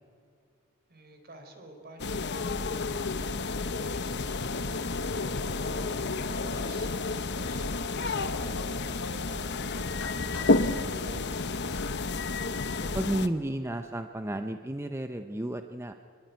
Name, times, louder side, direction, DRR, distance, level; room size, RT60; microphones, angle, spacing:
voice 1, 0.9-5.1 5.7-11.9, right 1 dB, 45° right, 5 dB, 4.3 m, -51 dB
sound 1, 2.0-13.3, left 3 dB, 50° left, 1.0 m, -31 dB
sound 2, 5.0-5.5 6.3-6.8 7.2-7.7 8.0-9.3 9.9-10.6, left 2 dB, 85° left, 4.0 m, -43 dB
voice 2, 12.9-15.9, right 1 dB, 10° right, 7 dB, 0.7 m, -32 dB
26.0 x 21.0 x 9.4 m, 2.4 s
head